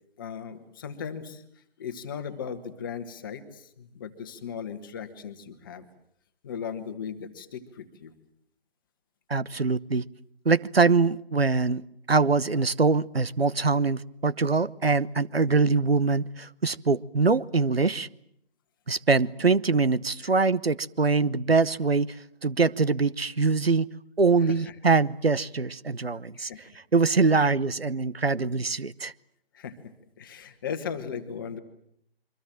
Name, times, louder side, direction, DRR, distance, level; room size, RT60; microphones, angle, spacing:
voice 1, 0.2-1.4 1.8-5.9 6.4-8.1 15.4-15.7 20.2-20.3 24.4-24.7 26.3-26.7 27.4-27.5 29.5-31.6, left 7 dB, 20° left, 8 dB, 1.5 m, -37 dB
voice 2, 9.3-10.0 10.4-11.8 12.1-18.1 18.9-22.1 22.4-23.9 24.2-26.5 26.9-29.1, right 4 dB, 75° right, 18 dB, 1.0 m, -23 dB
27.0 x 24.0 x 7.6 m, 0.71 s
figure-of-eight pair, 150°, 30 cm